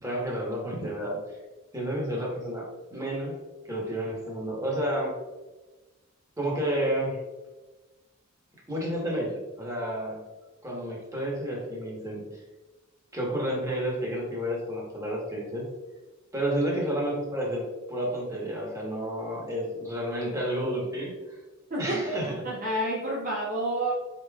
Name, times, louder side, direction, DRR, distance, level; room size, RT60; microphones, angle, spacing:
voice 1, 0.0-1.2 1.7-3.4 3.7-5.1 6.4-7.2 8.7-9.3 9.6-10.2 10.6-12.4 13.1-15.7 16.3-21.4 21.8-22.3, right 1 dB, 15° right, -3 dB, 1.2 m, -30 dB
voice 2, 21.7-23.9, right 1 dB, 40° right, -4 dB, 0.7 m, -29 dB
5.0 x 4.5 x 2.3 m, 1.1 s
head